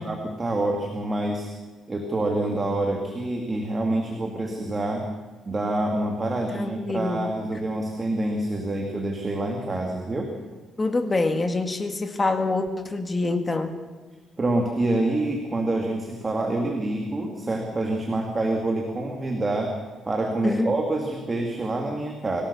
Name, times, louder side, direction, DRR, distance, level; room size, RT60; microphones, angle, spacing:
voice 1, 0.0-1.5 1.9-5.1 5.4-10.3 14.4-19.7 20.0-22.4, right 2 dB, 20° right, 2 dB, 2.5 m, -26 dB
voice 2, 6.5-7.3 10.8-13.7 20.4-20.7, left 3 dB, 20° left, 7 dB, 2.0 m, -25 dB
25.0 x 17.0 x 7.1 m, 1.3 s
cardioid pair, 140°, 0 cm